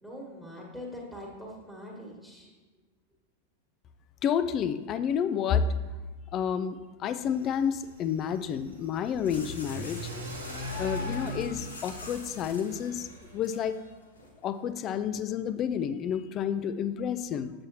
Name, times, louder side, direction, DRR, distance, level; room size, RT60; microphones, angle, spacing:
voice 1, 0.0-2.5, left 1 dB, ahead, -2 dB, 1.6 m, -43 dB
voice 2, 4.2-5.7 6.3-10.0 10.7-13.1 13.3-13.8 14.4-17.5, left 8 dB, 30° left, 12 dB, 0.4 m, -30 dB
Car / Accelerating revving vroom, 7.2-13.4, equal, 75° right, 1.3 m, -41 dB
sound 1, 9.2-14.3, left 3 dB, 75° left, 1.0 m, -44 dB
7.5 x 6.8 x 3.0 m, 1.3 s
figure-of-eight pair, 90°, 0 cm